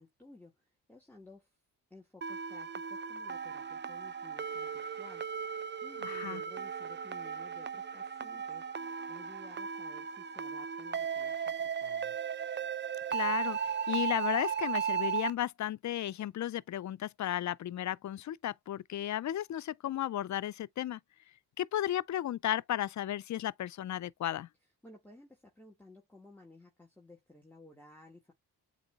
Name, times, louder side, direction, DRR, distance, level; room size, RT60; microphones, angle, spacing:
voice 1, 0.0-1.6 1.9-5.2 5.8-12.2 24.8-28.3, left 2 dB, 5° left, 1.8 m, -56 dB
sound 1, 2.2-15.3, right 7 dB, 25° right, 0.5 m, -36 dB
voice 2, 6.0-6.4 13.1-13.6 13.9-21.0 21.6-24.5, left 12 dB, 45° left, 0.4 m, -34 dB
8.0 x 2.9 x 2.3 m
cardioid pair, 70°, 42 cm